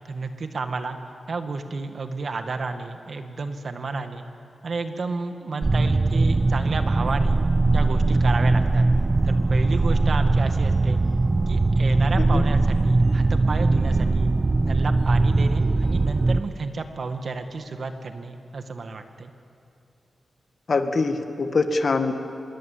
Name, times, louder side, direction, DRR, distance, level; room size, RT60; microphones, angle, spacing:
voice 1, 0.1-1.0 1.3-4.2 4.6-7.4 7.7-8.9 9.2-11.0 11.5-14.3 14.7-19.3, right 4 dB, 60° right, 7 dB, 1.9 m, -31 dB
sound 1, 5.6-16.4, right 3 dB, 35° right, 0.6 m, -20 dB
voice 2, 20.7-22.1, left 3 dB, 55° left, 7 dB, 1.8 m, -23 dB
26.0 x 22.0 x 8.5 m, 2.7 s
wide cardioid pair, 95°, 0 cm